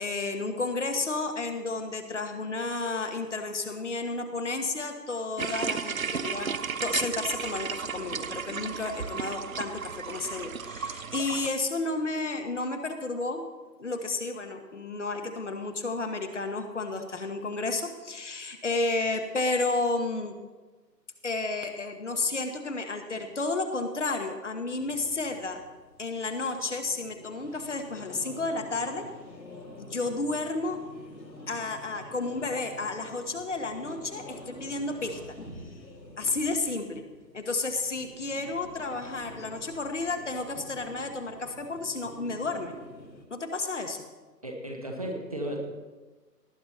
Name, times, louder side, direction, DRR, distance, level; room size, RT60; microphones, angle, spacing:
voice 1, 0.0-6.5 6.8-13.4 13.8-20.3 21.2-25.6 26.0-29.1 29.8-30.8 31.5-35.2 36.2-37.0 37.3-42.7 43.3-44.0, left 3 dB, 45° left, 6 dB, 1.4 m, -32 dB
sound 1, 5.4-11.5, right 6 dB, 55° right, 0.6 m, -34 dB
sound 2, 24.8-43.2, left 1 dB, 80° left, 2.8 m, -48 dB
voice 2, 44.4-45.6, right 1 dB, 20° right, 1 dB, 1.0 m, -34 dB
18.5 x 9.1 x 4.1 m, 1.2 s
figure-of-eight pair, 155°, 50 cm